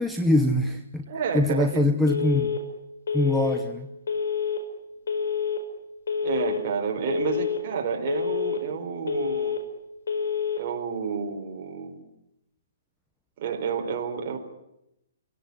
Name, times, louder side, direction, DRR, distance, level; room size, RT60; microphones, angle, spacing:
voice 1, 0.0-1.1 1.3-2.6 3.1-3.9, left 1 dB, ahead, 6 dB, 0.9 m, -23 dB
voice 2, 1.1-2.0 6.2-9.6 10.6-12.0 13.4-14.4, right 6 dB, 35° right, 2 dB, 4.2 m, -30 dB
Telephone, 2.1-2.6 3.1-3.6 4.1-4.6 5.1-5.6 6.1-6.6 7.1-7.6 8.1-8.6 9.1-9.6 10.1-10.6, left 6 dB, 85° left, 5.5 m, -27 dB
26.5 x 17.5 x 9.7 m, 0.86 s
hypercardioid pair, 165°, 0 cm